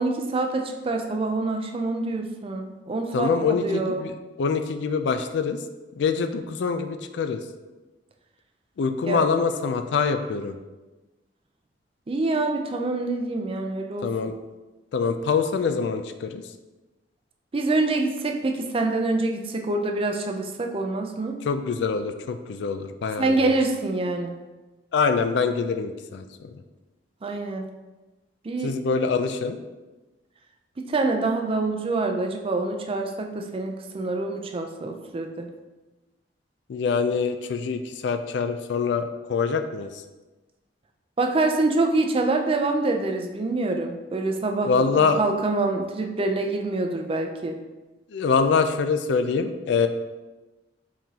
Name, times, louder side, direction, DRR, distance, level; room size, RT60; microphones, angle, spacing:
voice 1, 0.0-4.0 9.0-9.2 12.1-14.1 17.5-21.4 23.2-24.4 27.2-27.7 28.4-28.7 30.8-35.5 41.2-47.6, right 2 dB, 30° right, 3 dB, 0.4 m, -26 dB
voice 2, 3.1-4.1 4.4-5.6 6.0-7.4 8.8-10.5 14.0-14.3 14.9-16.4 21.4-23.4 24.9-26.5 28.6-29.6 36.7-39.9 44.6-45.2 48.1-49.9, left 5 dB, 70° left, 8 dB, 0.3 m, -24 dB
4.7 x 3.7 x 2.8 m, 1.1 s
head